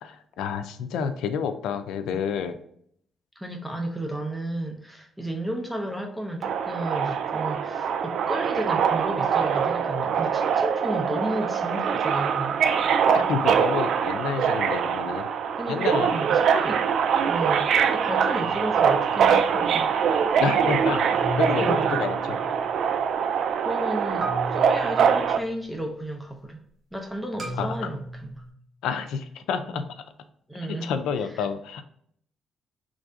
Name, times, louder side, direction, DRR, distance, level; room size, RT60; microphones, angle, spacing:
voice 1, 0.0-2.6 13.1-15.3 15.7-16.1 20.4-22.5 27.6-27.8 28.8-29.8 30.7-31.8, left 6 dB, 85° left, 9 dB, 0.4 m, -29 dB
voice 2, 3.4-12.6 15.6-16.8 17.2-19.9 21.6-22.0 23.6-26.6 26.9-28.3 29.7-29.8 30.5-30.9 31.3-31.5, right 1 dB, 5° right, 2 dB, 0.6 m, -33 dB
Subway metro underground, 6.4-25.4, right 7 dB, 70° right, 0.3 m, -23 dB
sound 1, 18.4-19.3 21.2-22.9 24.2-25.7 27.4-28.5, right 1 dB, 45° right, 1.0 m, -36 dB
3.2 x 2.6 x 3.6 m, 0.66 s
cardioid pair, 90°, 0 cm